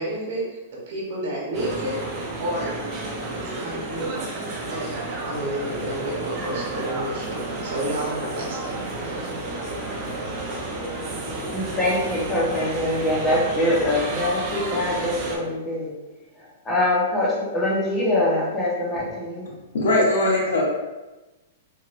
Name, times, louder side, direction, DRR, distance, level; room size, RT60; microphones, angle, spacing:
voice 1, 0.0-2.7 3.3-5.0 5.2-9.4, right 1 dB, 55° right, -4 dB, 1.1 m, -31 dB
sound 1, 1.5-15.4, right 2 dB, 30° right, 0.6 m, -31 dB
voice 2, 11.5-15.9 16.6-19.5, left 1 dB, 15° left, -6 dB, 0.9 m, -23 dB
voice 3, 19.7-20.6, left 1 dB, 80° left, -3 dB, 1.0 m, -20 dB
3.0 x 2.7 x 2.5 m, 1.1 s
hypercardioid pair, 140°, 0 cm